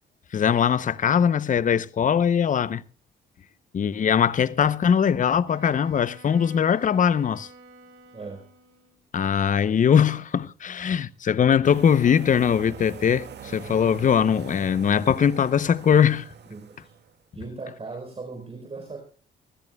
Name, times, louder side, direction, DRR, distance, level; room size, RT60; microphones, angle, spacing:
voice 1, 0.3-2.8 3.7-7.5 9.1-16.3, left 8 dB, 40° left, 0.7 m, -21 dB
Wind instrument woodwind instrument, 5.4-9.0, right 3 dB, 90° right, 3.2 m, -50 dB
voice 2, 8.1-8.4 16.5-16.9 17.3-19.0, right 3 dB, 30° right, 4.1 m, -38 dB
sound 1, 11.6-17.1, right 6 dB, 60° right, 2.1 m, -42 dB
24.5 x 15.5 x 2.3 m
cardioid pair, 90°, 20 cm